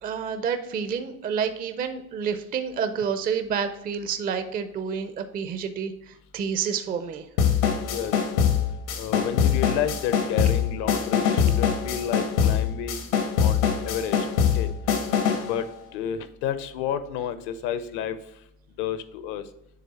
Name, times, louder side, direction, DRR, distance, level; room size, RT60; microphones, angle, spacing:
voice 1, 0.0-7.2, right 7 dB, 20° right, 9 dB, 0.4 m, -29 dB
sound 1, 7.4-15.5, left 7 dB, 75° left, 1.5 m, -23 dB
voice 2, 7.8-8.1 9.0-14.2 14.5-14.7 15.4-15.6 15.9-18.2 18.8-19.4, left 9 dB, 55° left, 12 dB, 0.8 m, -31 dB
7.6 x 3.3 x 4.2 m, 0.81 s
supercardioid pair, 100°, 45 cm